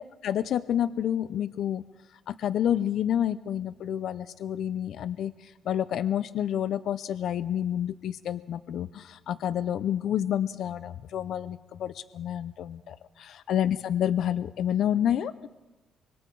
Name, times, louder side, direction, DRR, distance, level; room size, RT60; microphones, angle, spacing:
voice 1, 0.2-1.8 2.3-15.5, left 10 dB, 70° left, 14 dB, 0.6 m, -29 dB
25.5 x 22.5 x 4.7 m, 1.2 s
cardioid pair, 90°, 0 cm